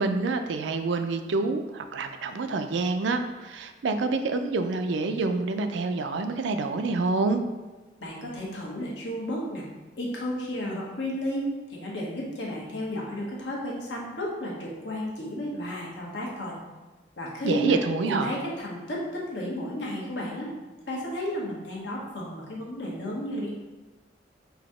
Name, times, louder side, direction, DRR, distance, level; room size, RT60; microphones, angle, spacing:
voice 1, 0.0-7.4 17.4-18.3, right 3 dB, 80° right, 7 dB, 0.4 m, -27 dB
voice 2, 8.0-9.6 10.0-16.6 17.2-17.8 18.0-20.5 20.9-23.5, equal, 75° left, -3 dB, 1.2 m, -32 dB
3.9 x 2.8 x 4.9 m, 1.2 s
head